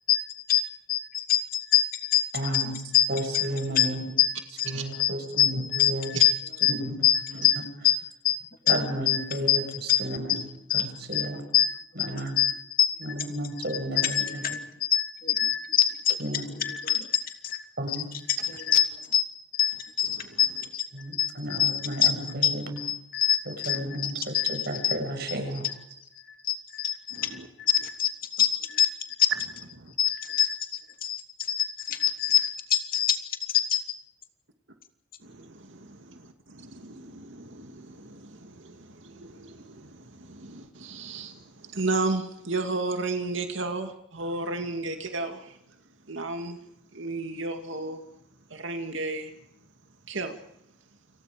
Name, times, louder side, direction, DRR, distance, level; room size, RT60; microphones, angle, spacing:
voice 1, 0.9-2.2 2.5-2.6 2.9-3.1 3.3-3.4 3.7-4.7 5.0-6.3 6.6-6.7 7.0-7.6 7.8-8.0 8.2-8.4 8.7-8.8 9.1-9.6 9.9-10.0 10.3-10.4 10.7-10.9 11.1-13.0 13.9-14.6 14.9-18.0 18.3-18.4 18.7-18.9 19.1-19.2 19.5-20.9 21.1-22.2 22.4-24.9 25.6-25.7 26.4-28.9 30.0-30.6 31.0-31.2 31.5-33.2 33.5-33.8, left 10 dB, 50° left, 5 dB, 2.9 m, -25 dB
voice 2, 2.3-2.8 3.1-4.0 4.7-6.1 6.7-7.0 7.6-7.7 8.7-10.4 10.7-11.4 12.0-12.4 13.0-14.5 16.2-16.5 17.8-18.1 20.9-22.8 23.7-24.2 24.5-25.6, right 1 dB, 55° right, 5 dB, 6.9 m, -32 dB
voice 3, 27.1-27.5 29.7-29.9 35.2-45.6 46.0-46.6 46.9-48.0 48.5-49.3 50.1-50.4, right 3 dB, 75° right, 5 dB, 2.4 m, -34 dB
30.0 x 27.5 x 5.2 m, 0.79 s
head